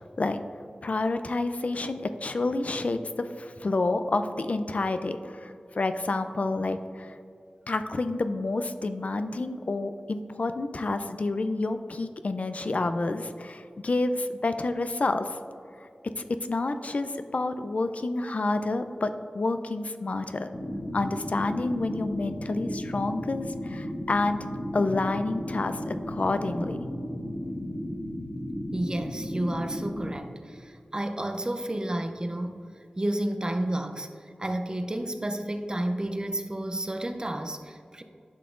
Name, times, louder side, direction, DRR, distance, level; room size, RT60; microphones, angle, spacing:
voice 1, 0.8-7.2 7.7-15.4 15.8-15.9 16.2-20.5 20.9-24.4 24.7-26.8, left 2 dB, 55° left, 9 dB, 0.4 m, -29 dB
sound 1, 20.5-30.1, equal, 40° left, 0.9 m, -35 dB
voice 2, 28.7-32.7 33.0-34.1 34.4-38.0, right 1 dB, 30° right, 7 dB, 0.5 m, -31 dB
10.5 x 5.8 x 2.5 m, 2.4 s
wide cardioid pair, 65°, 3 cm